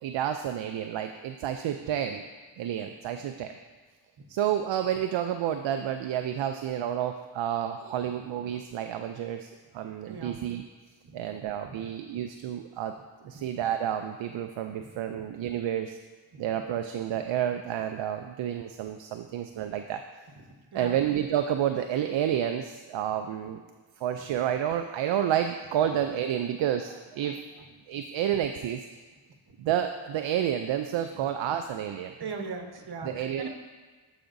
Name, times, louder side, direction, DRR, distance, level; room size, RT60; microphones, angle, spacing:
voice 1, 0.0-2.3 2.6-3.5 4.3-10.6 11.1-12.9 13.2-16.0 16.4-20.0 20.7-23.6 24.0-28.9 29.6-32.1 33.0-33.5, right 10 dB, 65° right, 6 dB, 0.5 m, -30 dB
voice 2, 10.1-10.4 11.0-11.9 13.2-13.5 20.4-21.0 31.2-31.3 32.2-33.5, right 4 dB, 50° right, 3 dB, 1.2 m, -40 dB
13.0 x 5.1 x 2.6 m, 1.3 s
cardioid pair, 55°, 49 cm